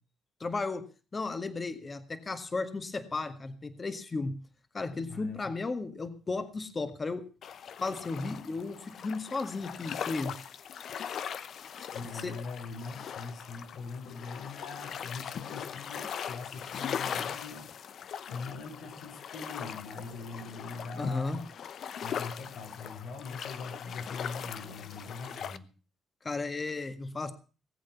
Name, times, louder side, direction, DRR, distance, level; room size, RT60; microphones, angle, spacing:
voice 1, 0.4-0.9 1.1-4.4 4.7-7.2 7.8-10.4 12.2-12.3 21.0-21.5 26.2-27.3, left 3 dB, 30° left, 10 dB, 1.8 m, -34 dB
voice 2, 5.1-5.5 11.9-21.4 22.0-25.7, left 4 dB, 85° left, 3 dB, 5.1 m, -42 dB
sound 1, 7.4-25.6, left 8 dB, 65° left, 0.9 m, -40 dB
19.0 x 8.1 x 6.9 m, 0.37 s
cardioid pair, 90°, 0 cm